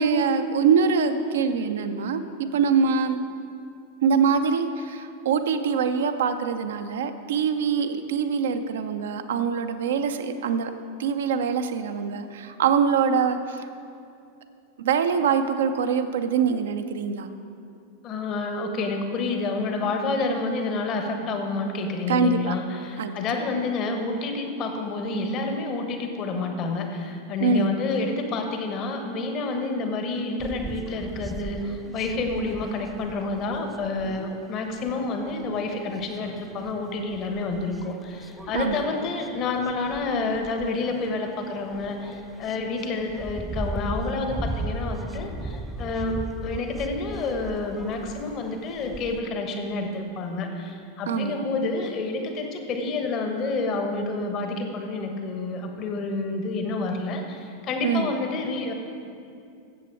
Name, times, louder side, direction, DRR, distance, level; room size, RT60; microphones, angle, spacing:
voice 1, 0.0-3.2 4.0-10.7 11.0-13.6 14.8-17.3 22.1-22.5 23.0-23.1 27.4-27.8 38.5-38.9 51.1-51.4 57.8-58.1, right 6 dB, 60° right, 8 dB, 0.6 m, -24 dB
voice 2, 18.0-58.7, left 3 dB, 35° left, 5 dB, 1.2 m, -29 dB
sound 1, 30.4-49.2, right 2 dB, 5° right, 0.4 m, -38 dB
15.0 x 7.5 x 4.7 m, 2.5 s
figure-of-eight pair, 90°, 0 cm